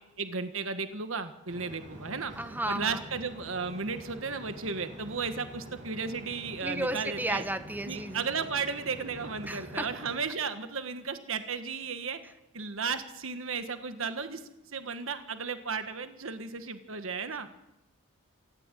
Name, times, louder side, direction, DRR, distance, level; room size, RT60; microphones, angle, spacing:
voice 1, 0.2-2.3 2.7-7.4 7.9-12.2 12.5-14.4 14.7-17.5, right 5 dB, 65° right, 9 dB, 1.5 m, -34 dB
sound 1, 1.5-10.1, equal, 35° right, 7.7 m, -46 dB
voice 2, 2.4-3.0 6.6-8.2 9.4-9.9, right 1 dB, 10° right, 10 dB, 1.3 m, -33 dB
27.5 x 13.5 x 9.1 m, 0.96 s
head